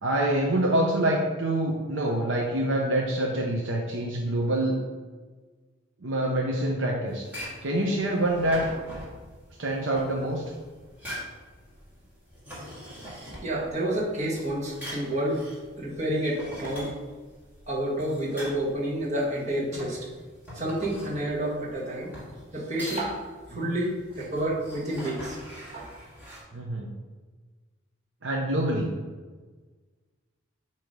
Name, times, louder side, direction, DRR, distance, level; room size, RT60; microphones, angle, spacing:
voice 1, 0.0-4.8 6.0-8.7 9.6-10.4 23.5-23.7 26.5-26.9 28.2-28.9, right 1 dB, 70° right, -1 dB, 0.8 m, -26 dB
sound 1, 7.1-26.4, equal, 10° right, 2.1 m, -43 dB
voice 2, 13.4-15.5 15.8-16.9 17.7-20.1 20.5-22.1 22.5-23.2 23.5-25.4 25.7-25.9, right 1 dB, 35° right, -4 dB, 1.5 m, -29 dB
7.8 x 3.0 x 5.2 m, 1.4 s
head